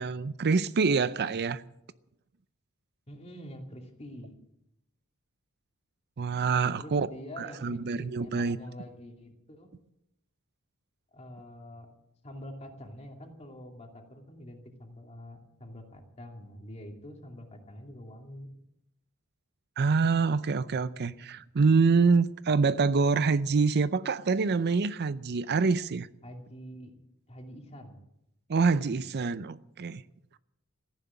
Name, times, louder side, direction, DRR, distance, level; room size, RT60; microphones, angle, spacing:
voice 1, 0.0-1.6 6.2-7.1 7.4-8.6 19.8-26.1 28.5-30.0, right 4 dB, 50° right, 0.5 m, -26 dB
voice 2, 3.1-4.4 6.8-9.7 11.1-11.9 12.2-18.5 26.2-26.9 27.3-28.0, equal, 30° left, 2.6 m, -46 dB
15.0 x 10.5 x 8.7 m
head